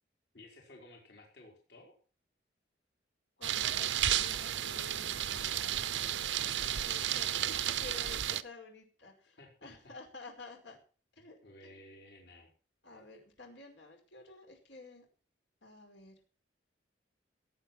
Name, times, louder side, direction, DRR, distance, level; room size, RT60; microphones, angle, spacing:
voice 1, 0.3-1.9 9.4-9.9 11.4-12.5, left 1 dB, 65° left, 0 dB, 4.5 m, -55 dB
voice 2, 3.4-10.8 11.1-11.9 12.8-15.1 15.6-16.2, left 3 dB, 85° left, 3 dB, 5.1 m, -52 dB
sound 1, 3.4-8.4, right 11 dB, 85° right, 0.8 m, -33 dB
18.0 x 8.9 x 6.0 m, 0.39 s
head